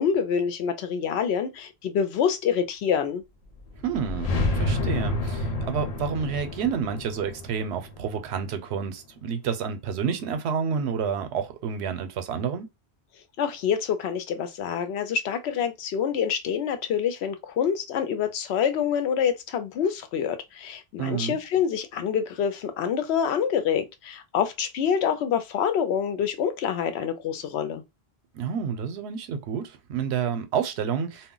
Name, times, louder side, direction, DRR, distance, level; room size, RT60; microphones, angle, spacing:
voice 1, 0.0-3.2 13.4-27.8, left 7 dB, 80° left, 0.8 m, -26 dB
sound 1, 3.5-8.7, left 2 dB, 50° left, 0.5 m, -29 dB
voice 2, 3.8-12.7 21.0-21.4 28.3-31.3, right 7 dB, 85° right, 0.8 m, -29 dB
2.2 x 2.1 x 3.7 m
omnidirectional pair, 1.1 m